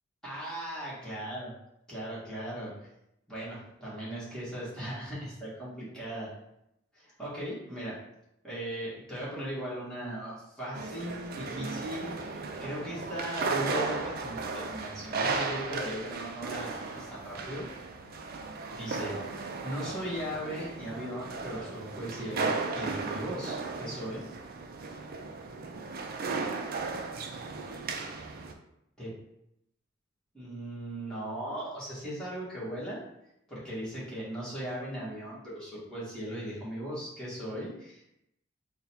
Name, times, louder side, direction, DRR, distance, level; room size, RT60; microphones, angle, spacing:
voice 1, 0.2-1.5 1.9-2.9 3.3-6.3 6.9-8.0 8.4-17.6 18.7-24.2 29.0-29.1 30.3-33.0 33.5-38.1, equal, 5° left, -9 dB, 1.5 m, -38 dB
sound 1, 10.8-28.5, right 4 dB, 50° right, 0.4 m, -35 dB
3.7 x 2.2 x 4.3 m, 0.83 s
head